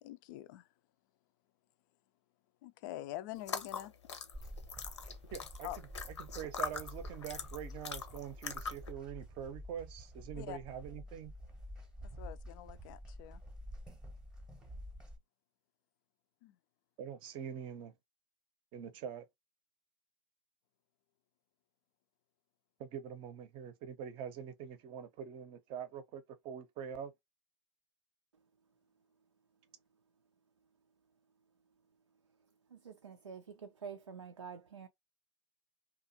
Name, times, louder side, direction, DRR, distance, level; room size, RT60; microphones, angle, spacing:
voice 1, 0.0-0.7 2.6-3.9 5.6-5.8 10.4-10.6 12.0-13.4 16.4-16.6, left 14 dB, 45° left, 0.4 m, -45 dB
sound 1, 3.4-8.9, left 6 dB, 75° left, 0.7 m, -42 dB
sound 2, 4.3-15.2, equal, 5° right, 0.8 m, -49 dB
voice 2, 5.3-5.7 6.2-11.3 17.0-17.9 18.7-19.2 22.8-27.1, right 8 dB, 35° right, 0.7 m, -44 dB
voice 3, 32.7-34.9, right 6 dB, 85° right, 0.4 m, -48 dB
2.8 x 2.4 x 2.6 m
figure-of-eight pair, 100°, 15 cm